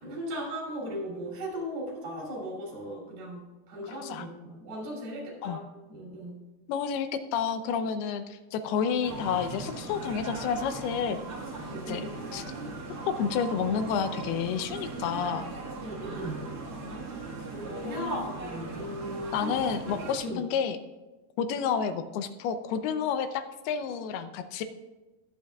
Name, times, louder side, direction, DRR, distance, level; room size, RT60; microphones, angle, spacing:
voice 1, 0.0-5.6 5.9-6.4 11.7-12.2 15.8-16.4 17.4-19.5 19.9-20.4, right 1 dB, 75° right, -2 dB, 4.8 m, -37 dB
voice 2, 3.9-4.3 5.4-5.6 6.7-11.2 11.9-12.0 12.3-12.4 13.1-15.4 17.8-18.3 19.3-20.8 21.4-24.6, left 7 dB, 85° left, 9 dB, 2.7 m, -30 dB
sound 1, 9.0-20.2, right 3 dB, 50° right, 1.8 m, -39 dB
20.5 x 7.6 x 2.3 m, 1.2 s
omnidirectional pair, 4.5 m